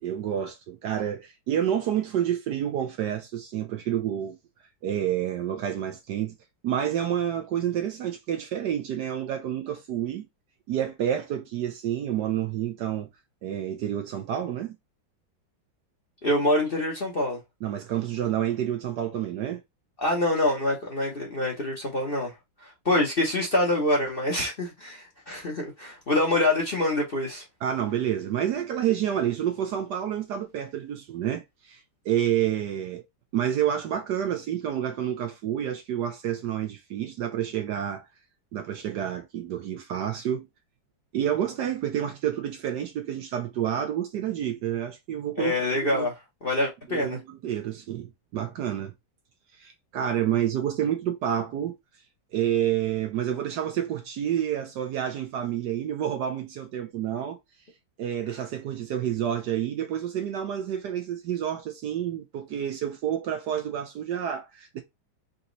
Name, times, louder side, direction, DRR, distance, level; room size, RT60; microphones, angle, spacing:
voice 1, 0.0-4.4 4.8-6.3 6.6-10.3 10.7-13.1 13.4-14.8 17.6-19.6 27.6-31.8 32.0-33.0 33.3-38.0 38.5-40.5 41.1-46.1 46.9-48.9 49.6-51.8 52.3-57.4 58.0-64.8, right 10 dB, 70° right, 1.1 m, -29 dB
voice 2, 16.2-17.4 20.0-22.3 22.6-27.4 45.4-46.1 46.4-47.2, left 1 dB, 40° left, 0.9 m, -25 dB
4.1 x 2.8 x 3.8 m
omnidirectional pair, 2.2 m